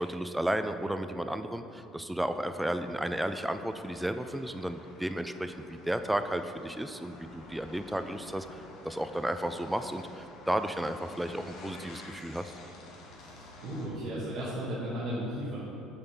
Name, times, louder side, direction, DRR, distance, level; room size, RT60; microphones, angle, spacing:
voice 1, 0.0-12.5, right 1 dB, 5° right, 9 dB, 0.3 m, -33 dB
sound 1, 2.4-13.9, left 2 dB, 70° left, 0.9 m, -51 dB
voice 2, 13.2-15.6, right 1 dB, 60° right, -8 dB, 1.2 m, -35 dB
7.0 x 4.1 x 3.4 m, 2.8 s
supercardioid pair, 85°, 0 cm